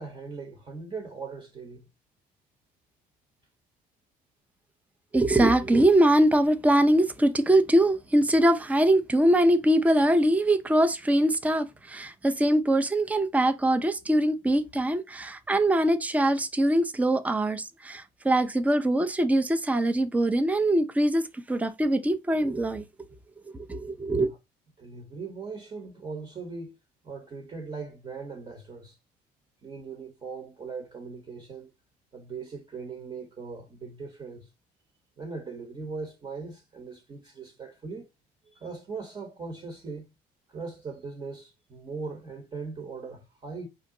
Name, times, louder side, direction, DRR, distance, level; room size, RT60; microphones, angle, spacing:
voice 1, 0.0-1.9 24.2-24.4 24.8-26.7 27.0-29.0 29.6-31.7 32.1-34.5 35.2-38.1 38.4-40.1 40.5-43.7, right 4 dB, 30° right, 1.0 m, -39 dB
voice 2, 5.1-22.9 23.5-24.3, right 1 dB, 10° right, 0.5 m, -23 dB
4.9 x 2.8 x 3.7 m
cardioid pair, 110°, 17 cm